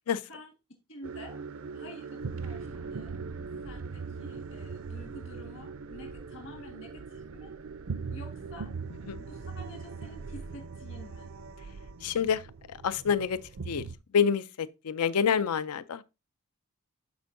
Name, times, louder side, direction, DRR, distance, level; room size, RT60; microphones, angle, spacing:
voice 1, 0.9-1.4 1.7-3.3 3.6-7.5 8.1-8.7 9.2-11.3, equal, 55° left, 1.8 m, -49 dB
sound 1, 1.0-14.0, right 4 dB, 65° right, 0.5 m, -40 dB
voice 2, 12.0-12.4 12.7-13.4 13.7-13.9 14.1-16.0, left 7 dB, 90° left, 0.5 m, -27 dB
12.0 x 4.5 x 2.6 m
head